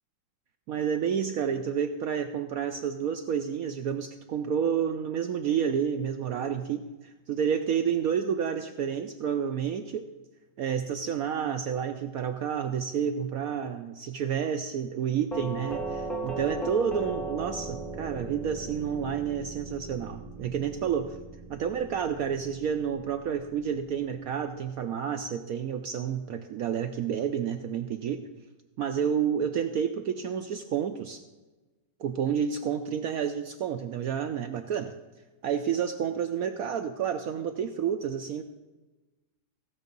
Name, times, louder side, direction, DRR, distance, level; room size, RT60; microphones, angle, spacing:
voice 1, 0.7-10.0 10.6-21.2 21.5-28.2 28.8-31.2 32.0-34.9 35.4-38.4, right 8 dB, 70° right, 7 dB, 0.9 m, -30 dB
Doorbell, 15.3-24.1, right 2 dB, ahead, 0.7 m, -38 dB
15.5 x 7.0 x 5.3 m, 1.2 s
omnidirectional pair, 1.9 m